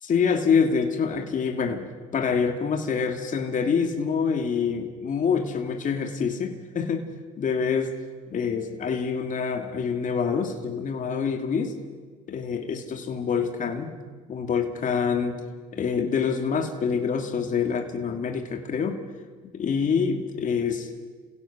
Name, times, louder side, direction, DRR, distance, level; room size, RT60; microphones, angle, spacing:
voice 1, 0.0-1.9 2.1-7.1 7.4-7.9 8.3-11.7 12.3-13.9 14.3-15.4 15.7-19.0 19.5-20.9, left 6 dB, 40° left, 4 dB, 2.6 m, -26 dB
28.5 x 16.5 x 6.2 m, 1.5 s
supercardioid pair, 80°, 20 cm